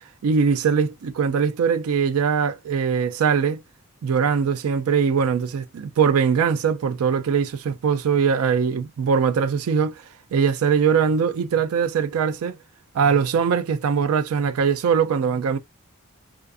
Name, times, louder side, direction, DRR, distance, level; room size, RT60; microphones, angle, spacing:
voice 1, 0.2-3.6 4.0-10.0 10.3-12.6 12.9-15.6, right 6 dB, 70° right, 0.4 m, -21 dB
2.4 x 2.4 x 2.3 m
head